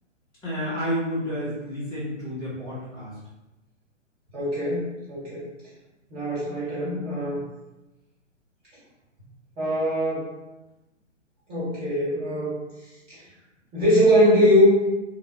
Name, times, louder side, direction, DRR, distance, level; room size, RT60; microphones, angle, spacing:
voice 1, 0.4-3.1, equal, 10° left, -9 dB, 0.6 m, -30 dB
voice 2, 4.3-5.5 6.1-7.4 9.6-10.3 11.5-12.5 13.7-14.7, equal, 15° right, -11 dB, 1.3 m, -21 dB
2.7 x 2.1 x 2.6 m, 1.0 s
figure-of-eight pair, 125°, 38 cm